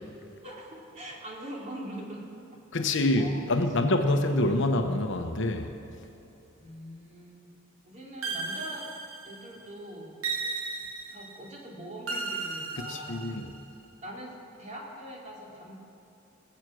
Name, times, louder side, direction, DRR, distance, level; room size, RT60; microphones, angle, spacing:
voice 1, 0.4-4.1 6.6-7.4 7.8-8.9 9.3-10.2 11.1-13.3 14.0-15.8, right 1 dB, 35° right, -3 dB, 2.9 m, -43 dB
voice 2, 2.7-5.7 12.9-13.5, left 1 dB, 65° left, 6 dB, 1.0 m, -26 dB
sound 1, 8.2-9.6 10.2-11.4 12.1-13.6, right 4 dB, 85° right, 1.3 m, -35 dB
20.0 x 8.2 x 6.3 m, 3.0 s
head